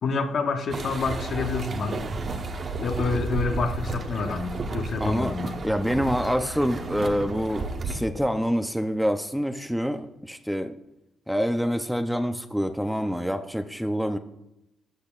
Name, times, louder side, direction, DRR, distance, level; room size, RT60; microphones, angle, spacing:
voice 1, 0.0-2.1 2.8-5.6, left 4 dB, 55° left, 1.0 m, -28 dB
sound 1, 0.7-8.0, right 3 dB, 45° right, 1.0 m, -32 dB
voice 2, 5.0-5.4 5.6-10.8 11.3-14.2, equal, ahead, 0.6 m, -26 dB
13.5 x 8.0 x 2.5 m
cardioid pair, 90°, 0 cm